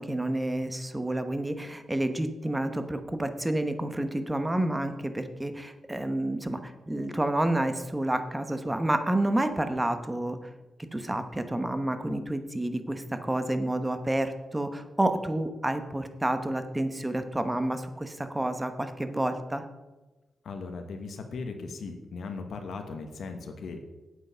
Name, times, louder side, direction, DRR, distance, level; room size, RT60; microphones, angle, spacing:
voice 1, 0.0-10.5 10.9-19.6, right 1 dB, 15° right, 8 dB, 1.0 m, -29 dB
voice 2, 20.4-23.9, left 4 dB, 75° left, 5 dB, 1.2 m, -38 dB
8.6 x 8.1 x 5.7 m, 1.1 s
cardioid pair, 95°, 0 cm